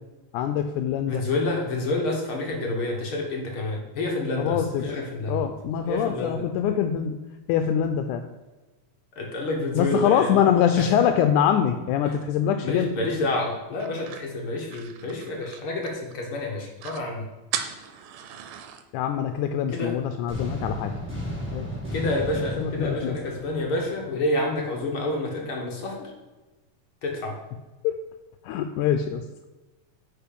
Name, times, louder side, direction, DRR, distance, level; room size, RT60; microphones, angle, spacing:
voice 1, 0.3-1.2 4.4-4.8 5.3-7.2 7.5-8.2 9.8-12.9 18.9-20.9 21.5-21.7 22.6-23.2 27.8-27.9 28.4-29.2, left 9 dB, 80° left, 7 dB, 2.0 m, -24 dB
voice 2, 1.1-5.4 5.9-6.4 9.1-10.4 10.8-10.9 12.1-12.2 12.6-17.3 19.7-20.0 21.9-26.1 27.0-27.4, left 2 dB, 55° left, 0 dB, 1.7 m, -28 dB
sound 1, 13.8-16.2 16.5-16.6 16.8-17.1 17.5-18.8, right 9 dB, 85° right, 2.3 m, -36 dB
sound 2, 20.3-24.2, equal, 5° right, 2.2 m, -34 dB
9.3 x 5.0 x 5.2 m, 1.1 s
omnidirectional pair, 3.6 m